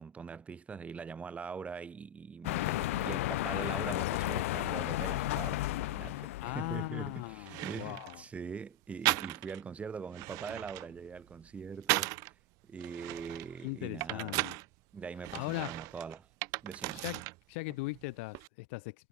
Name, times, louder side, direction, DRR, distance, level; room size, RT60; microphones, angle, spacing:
voice 1, 0.0-12.3 12.6-14.6 14.9-16.3 16.6-17.1, right 5 dB, 20° right, 7.2 m, -43 dB
sound 1, 2.4-7.4, left 17 dB, 85° left, 0.9 m, -34 dB
voice 2, 6.4-8.2 13.6-14.6 15.3-15.7 16.9-17.2 17.5-19.1, left 26 dB, 65° left, 1.5 m, -39 dB
sound 2, 7.0-7.1 7.4-8.2 9.0-9.7 10.0-12.3 12.8-14.7 15.2-17.4 17.7-18.5, right 26 dB, 50° right, 0.8 m, -36 dB
supercardioid pair, 145°, 7 cm